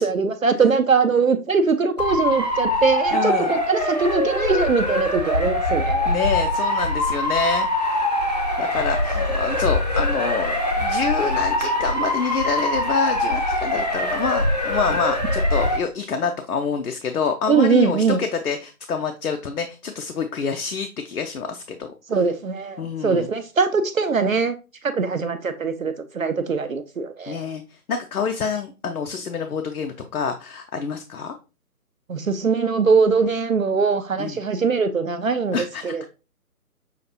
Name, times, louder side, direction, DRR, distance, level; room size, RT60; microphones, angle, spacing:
voice 1, 0.0-6.1 17.5-18.2 22.1-24.5 24.8-27.4 32.1-35.6 35.8-36.0, right 5 dB, 60° right, 0.5 m, -21 dB
Motor vehicle (road) / Siren, 2.0-15.8, left 1 dB, 30° left, 0.6 m, -23 dB
voice 2, 3.1-3.5 6.1-8.1 8.6-21.9 22.8-23.3 27.3-31.3 34.2-34.4 35.5-36.0, left 5 dB, 70° left, 0.6 m, -27 dB
5.8 x 2.5 x 2.7 m
figure-of-eight pair, 150°, 46 cm